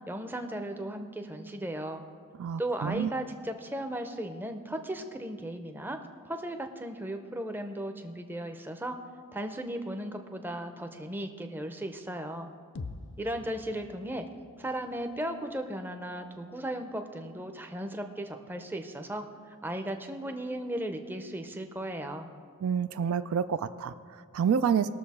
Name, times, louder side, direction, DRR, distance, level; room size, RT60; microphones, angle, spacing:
voice 1, 0.1-2.0 2.6-6.0 6.2-9.0 9.3-12.5 13.2-14.3 14.6-22.3, right 1 dB, 10° right, 6 dB, 0.6 m, -36 dB
voice 2, 2.4-3.1 22.6-24.9, right 7 dB, 65° right, 12 dB, 0.3 m, -28 dB
sound 1, 12.7-16.7, left 3 dB, 55° left, 0.5 m, -47 dB
19.5 x 6.6 x 4.2 m, 2.1 s
head